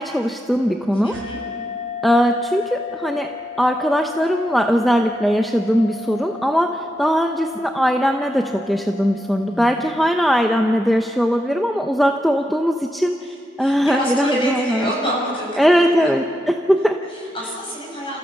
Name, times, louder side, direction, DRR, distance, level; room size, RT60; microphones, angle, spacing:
voice 1, 0.0-1.1 2.0-3.3 3.6-14.9 15.6-17.0, equal, ahead, 4 dB, 0.7 m, -19 dB
voice 2, 1.0-1.4 9.4-9.8 13.6-16.1 17.1-18.2, equal, 30° left, -4 dB, 7.9 m, -27 dB
sound 1, 1.1-10.2, left 9 dB, 70° right, 2.4 m, -34 dB
29.0 x 15.0 x 7.2 m, 2.5 s
head